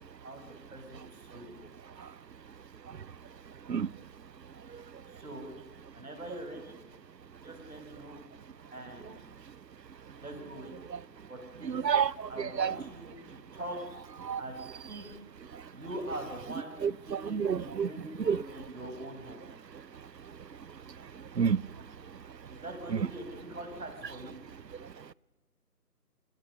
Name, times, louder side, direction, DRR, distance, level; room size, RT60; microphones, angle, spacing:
voice 1, 0.2-1.6 1.9-2.1 5.1-5.5 5.9-6.8 7.4-8.2 8.7-9.2 10.2-10.9 11.3-11.8 12.3-13.9 14.4-14.5 14.9-15.1 15.7-19.4 22.5-24.3, right 1 dB, 60° right, 7.2 m, -43 dB
voice 2, 11.6-12.7 14.2-14.4 16.8-17.9 18.3-18.4 21.4-21.6, right 7 dB, 90° right, 0.8 m, -29 dB
26.5 x 18.5 x 6.8 m
figure-of-eight pair, 175°, 48 cm